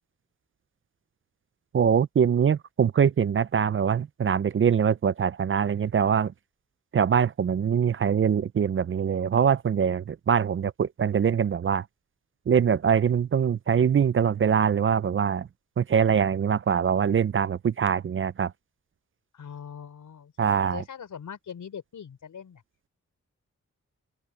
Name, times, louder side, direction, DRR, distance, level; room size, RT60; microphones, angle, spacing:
voice 1, 1.7-6.3 6.9-11.8 12.5-15.5 15.8-18.5 20.4-20.8, right 7 dB, 45° right, 0.5 m, -23 dB
voice 2, 19.3-22.6, left 7 dB, 85° left, 5.2 m, -42 dB
open air
wide cardioid pair, 90°, 30 cm